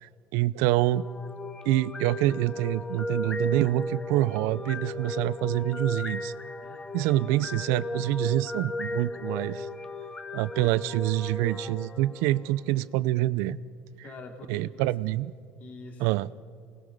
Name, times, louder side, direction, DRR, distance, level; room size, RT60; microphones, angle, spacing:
voice 1, 0.0-1.0 1.7-6.3 6.9-9.7 10.3-13.6 14.5-15.3 16.0-16.3, right 16 dB, 80° right, 19 dB, 0.6 m, -26 dB
sound 1, 0.7-12.8, left 1 dB, 15° left, 0.9 m, -36 dB
voice 2, 6.6-6.9 7.2-7.6 14.0-14.9 15.6-16.2, left 2 dB, 40° left, 4 dB, 3.0 m, -45 dB
25.0 x 20.5 x 5.5 m, 2.3 s
cardioid pair, 150°, 4 cm